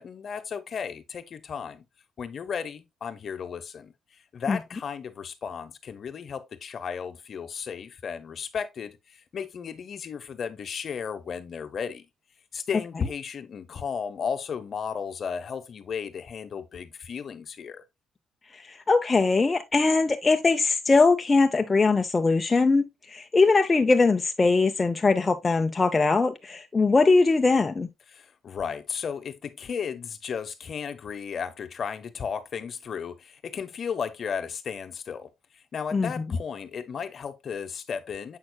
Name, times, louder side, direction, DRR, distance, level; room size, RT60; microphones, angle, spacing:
voice 1, 0.0-1.8 2.2-12.1 12.5-17.8 28.1-38.4, left 6 dB, 50° left, 0.9 m, -34 dB
voice 2, 18.5-27.9 35.9-36.1, left 3 dB, 25° left, 0.6 m, -21 dB
7.4 x 6.0 x 2.2 m
cardioid pair, 90°, 0 cm